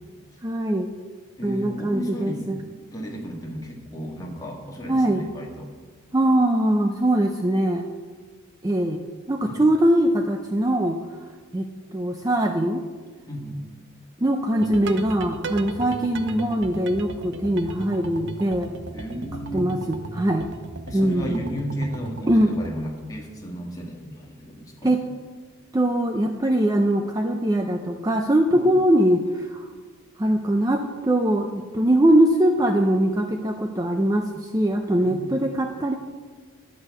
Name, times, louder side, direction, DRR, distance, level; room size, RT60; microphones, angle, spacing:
voice 1, 0.4-0.9 1.4-2.6 4.9-5.2 6.1-7.8 8.6-9.0 9.3-11.0 11.5-12.8 14.2-18.7 19.5-20.5 20.9-21.4 22.3-22.5 24.8-25.0 25.7-29.7 30.2-36.0, right 1 dB, 15° right, 4 dB, 0.4 m, -22 dB
voice 2, 1.4-2.5 2.9-5.7 9.4-9.6 13.3-13.6 15.8-15.9 18.9-19.7 20.9-24.9 28.5-28.8 35.0-35.4, equal, 15° left, -1 dB, 1.7 m, -34 dB
sound 1, 14.6-22.8, right 2 dB, 55° right, 0.7 m, -36 dB
11.5 x 5.5 x 8.1 m, 1.5 s
head